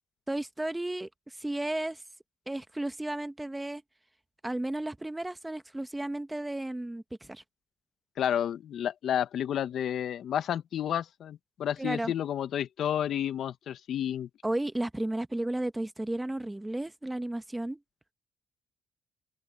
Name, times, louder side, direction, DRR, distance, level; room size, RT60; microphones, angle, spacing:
voice 1, 0.3-2.0 2.5-3.8 4.4-7.4 11.8-12.1 14.4-17.8, right 1 dB, 10° right, 1.2 m, -33 dB
voice 2, 8.2-14.3, left 10 dB, 70° left, 0.9 m, -31 dB
open air
cardioid pair, 90°, 0 cm